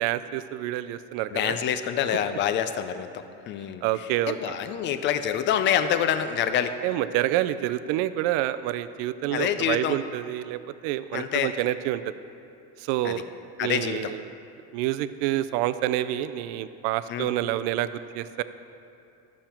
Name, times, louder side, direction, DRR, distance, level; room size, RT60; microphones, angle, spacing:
voice 1, 0.0-1.6 3.8-4.6 6.8-12.0 12.8-13.2 13.6-14.2 14.7-17.9 18.1-18.4, right 13 dB, 70° right, 13 dB, 0.5 m, -28 dB
voice 2, 1.3-3.1 3.5-3.8 4.4-6.7 9.3-10.0 11.1-11.5 13.0-13.2 13.6-14.1 17.1-17.3, left 9 dB, 35° left, 10 dB, 0.4 m, -26 dB
12.0 x 7.3 x 4.4 m, 2.6 s
cardioid pair, 165°, 35 cm